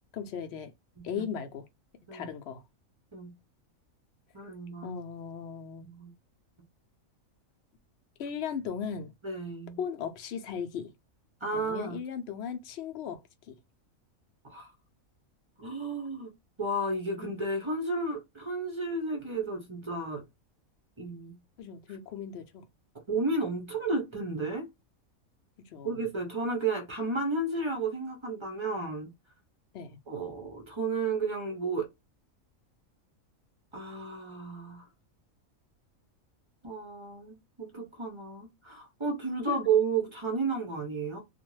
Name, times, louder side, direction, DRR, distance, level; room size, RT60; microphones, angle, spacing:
voice 1, 0.1-0.7 1.0-1.7 2.1-2.6 4.8-5.9 8.2-9.1 9.8-10.9 11.5-13.2 13.5-13.6 17.2-17.4 21.6-22.6 25.7-26.0 29.7-30.0 37.8-37.9 39.5-39.6, left 7 dB, 65° left, 0.7 m, -37 dB
voice 2, 4.3-4.9 5.8-6.1 9.2-9.8 11.4-12.0 14.4-14.7 15.6-16.3 16.6-20.3 21.0-21.4 23.1-24.7 25.8-29.1 30.1-31.9 33.7-34.9 36.6-41.2, right 3 dB, 45° right, 0.4 m, -32 dB
2.4 x 2.1 x 3.1 m
omnidirectional pair, 1.4 m